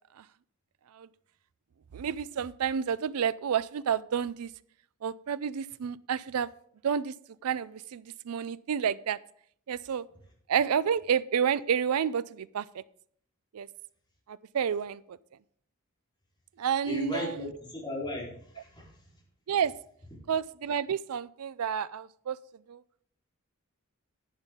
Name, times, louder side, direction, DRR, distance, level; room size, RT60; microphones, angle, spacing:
voice 1, 1.9-4.5 5.0-6.5 6.8-7.1 7.4-9.2 9.7-10.0 10.5-12.6 13.5-13.7 14.5-15.2 16.6-17.5 19.5-19.7 20.3-22.4 22.7-22.8, right 7 dB, 80° right, 18 dB, 0.4 m, -30 dB
voice 2, 16.9-18.9, equal, 20° left, -5 dB, 4.0 m, -36 dB
11.0 x 9.0 x 3.7 m, 0.63 s
head